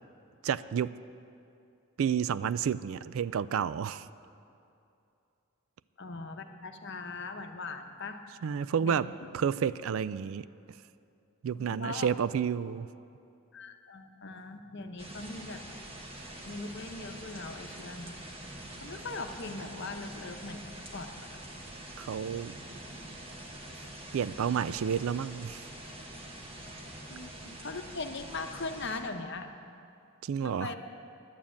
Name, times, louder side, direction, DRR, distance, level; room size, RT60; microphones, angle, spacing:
voice 1, 0.4-1.0 2.0-4.1 8.4-10.5 11.4-12.9 22.0-22.5 24.1-25.6 30.2-30.7, right 7 dB, 70° right, 16 dB, 0.3 m, -30 dB
voice 2, 6.0-8.2 8.8-9.1 11.6-12.1 13.5-15.6 16.4-18.2 18.8-21.3 27.1-29.5 30.4-30.8, left 3 dB, 55° left, 6 dB, 0.8 m, -40 dB
sound 1, 15.0-29.0, right 1 dB, 25° right, 1.2 m, -45 dB
10.5 x 9.6 x 8.6 m, 2.6 s
head